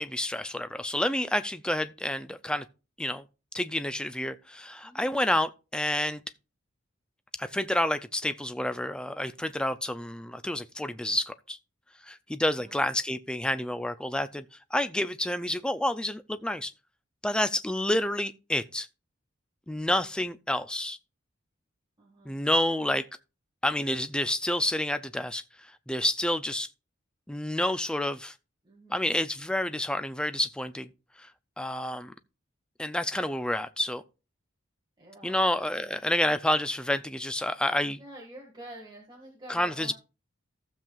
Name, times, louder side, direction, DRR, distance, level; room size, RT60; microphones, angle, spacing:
voice 1, 0.0-2.6 3.0-3.2 3.5-6.2 7.4-11.6 12.0-14.4 14.7-16.7 17.2-18.9 19.7-21.0 22.3-23.0 23.6-26.7 27.3-28.3 28.9-30.9 31.2-31.3 31.6-32.1 32.8-34.0 35.2-38.0 39.5-39.9, left 1 dB, 5° left, 0.3 m, -29 dB
voice 2, 4.8-5.1 12.6-12.8 22.0-22.3 28.6-29.2 35.0-35.4 38.0-39.9, right 1 dB, 20° right, 1.7 m, -47 dB
15.0 x 7.3 x 2.4 m
head